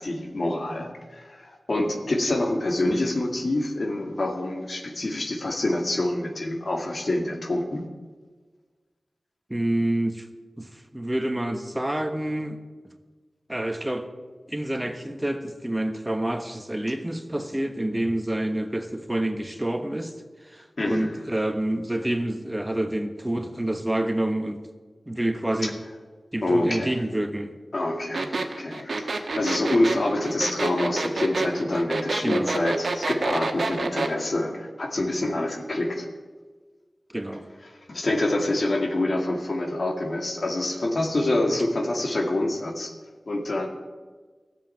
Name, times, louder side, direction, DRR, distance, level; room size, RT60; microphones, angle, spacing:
voice 1, 0.0-7.8 20.8-21.2 25.6-25.7 26.4-27.0 27.7-36.1 37.7-42.9 43.3-43.7, left 1 dB, 65° left, 3 dB, 2.1 m, -26 dB
voice 2, 9.5-10.3 10.6-12.6 13.5-14.1 14.5-20.1 20.4-24.6 25.1-25.8 26.3-27.5 32.2-32.5 37.1-37.5, right 1 dB, 20° right, 7 dB, 1.2 m, -28 dB
sound 1, 28.1-34.1, right 3 dB, 80° right, 1.2 m, -28 dB
14.0 x 7.6 x 9.1 m, 1.4 s
cardioid pair, 45°, 0 cm